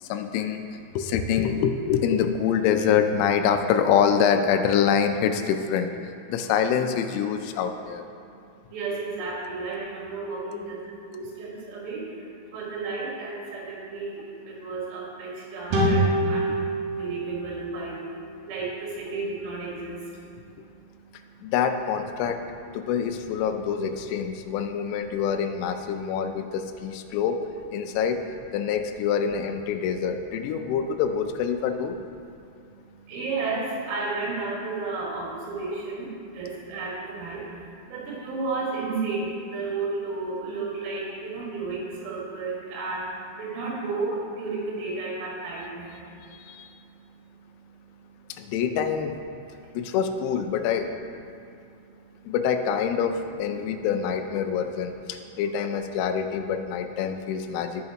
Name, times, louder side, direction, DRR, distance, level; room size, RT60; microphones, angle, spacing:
voice 1, 0.0-8.0 10.4-10.6 21.4-22.4 22.7-27.4 27.7-28.2 28.5-32.0 46.4-46.7 48.4-49.1 49.7-50.9 52.3-57.9, left 7 dB, 90° left, 7 dB, 3.4 m, -25 dB
voice 2, 8.7-21.5 32.3-48.5 49.5-49.8 51.3-52.4, right 3 dB, 75° right, -5 dB, 4.3 m, -34 dB
sound 1, 15.7-19.1, right 1 dB, 55° right, 3.7 m, -27 dB
17.0 x 5.7 x 2.9 m, 2.5 s
omnidirectional pair, 6.0 m